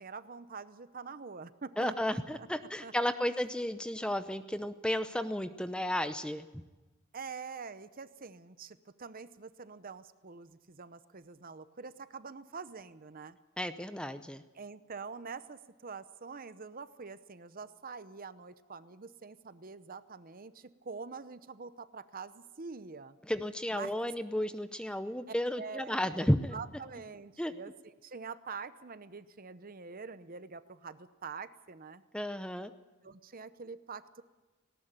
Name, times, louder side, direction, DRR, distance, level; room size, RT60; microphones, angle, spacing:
voice 1, 0.0-2.5 2.8-2.9 7.1-13.4 14.5-23.2 23.7-23.9 25.3-32.0 33.0-34.2, right 5 dB, 45° right, 13 dB, 0.8 m, -45 dB
voice 2, 1.8-6.4 13.6-14.4 23.3-26.6 27.4-27.5 32.1-32.7, left 1 dB, 5° left, 11 dB, 0.7 m, -33 dB
18.5 x 18.0 x 8.9 m, 1.2 s
head